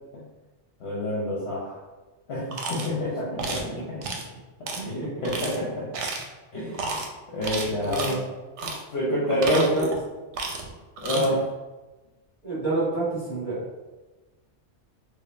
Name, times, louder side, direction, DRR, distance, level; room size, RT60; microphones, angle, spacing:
voice 1, 0.8-1.8 2.3-4.0 4.7-5.9 6.5-6.9 7.3-8.1 8.6-9.9 11.0-11.4, left 1 dB, 60° left, -6 dB, 1.0 m, -28 dB
sound 1, 2.5-2.9 3.4-3.7 4.0-4.3 4.7-4.8 5.2-5.6 5.9-6.3 6.7-7.1 7.4-8.2 8.6-8.8 9.2-10.0 10.3-10.7 11.0-11.3, right 3 dB, 75° right, 0.9 m, -32 dB
voice 2, 4.7-5.1 7.8-8.3 9.3-9.9 11.1-11.3 12.4-13.6, right 2 dB, 35° left, -7 dB, 1.7 m, -28 dB
4.7 x 2.3 x 2.6 m, 1.2 s
omnidirectional pair, 1.3 m